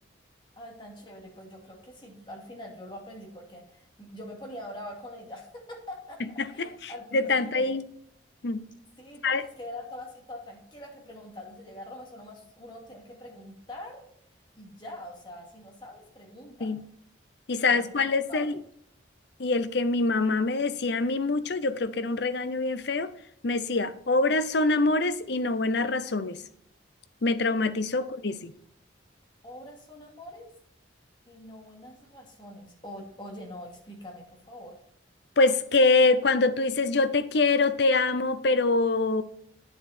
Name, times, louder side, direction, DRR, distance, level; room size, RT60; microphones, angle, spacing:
voice 1, 0.6-7.7 9.0-14.1 14.6-16.7 17.5-18.0 18.3-18.5 28.0-28.1 29.4-30.5 31.3-34.8, left 1 dB, 25° left, 2.4 m, -44 dB
voice 2, 6.4-7.9 8.4-8.6 9.2-9.4 16.6-16.8 17.5-18.6 19.4-23.1 23.4-26.4 27.2-28.5 35.4-39.2, left 3 dB, 60° left, 0.6 m, -25 dB
9.4 x 7.7 x 4.4 m
head